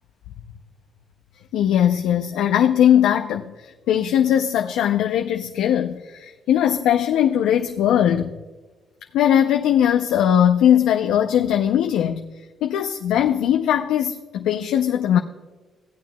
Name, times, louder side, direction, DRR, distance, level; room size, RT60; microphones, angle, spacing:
voice 1, 1.5-8.4 9.1-12.3 12.6-15.2, left 10 dB, 90° left, 4 dB, 0.4 m, -19 dB
16.0 x 9.2 x 2.2 m, 1.3 s
cardioid pair, 90°, 0 cm